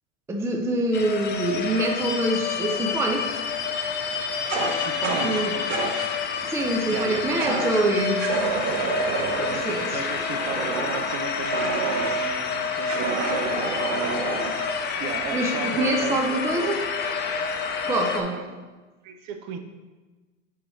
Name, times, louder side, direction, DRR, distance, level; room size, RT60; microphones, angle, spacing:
voice 1, 0.3-3.4 5.2-5.5 6.4-8.3 9.6-10.1 15.3-16.8 17.9-18.4, right 1 dB, 5° right, 2 dB, 0.5 m, -25 dB
sound 1, 0.9-18.2, left 5 dB, 25° left, 0.8 m, -28 dB
Fire, 4.5-6.1 7.4-7.8 8.2-12.3 12.9-14.7, right 4 dB, 70° right, 1.1 m, -29 dB
voice 2, 4.8-5.9 6.9-7.7 9.1-14.6 15.0-17.0 18.3-18.5 19.0-19.6, right 6 dB, 45° right, 7 dB, 0.8 m, -35 dB
8.4 x 4.2 x 3.1 m, 1.3 s
hypercardioid pair, 105°, 38 cm